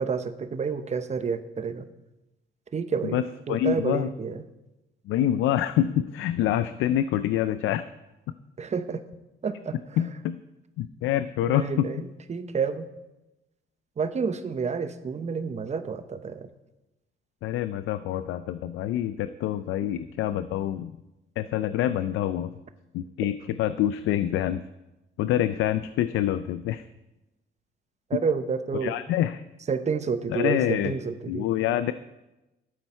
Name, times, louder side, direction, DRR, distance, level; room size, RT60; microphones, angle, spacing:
voice 1, 0.0-1.8 2.7-4.4 8.6-9.0 9.4-9.8 11.5-12.9 14.0-16.5 28.1-28.9 29.7-31.5, right 5 dB, 35° right, 10 dB, 0.8 m, -29 dB
voice 2, 3.5-4.1 5.1-7.8 10.0-10.4 10.8-11.9 17.4-20.9 21.4-22.5 22.9-24.6 25.2-26.8 28.8-29.4 30.3-30.9 31.3-31.9, left 11 dB, 85° left, 12 dB, 0.5 m, -26 dB
12.5 x 8.0 x 4.4 m, 1.0 s
cardioid pair, 90°, 20 cm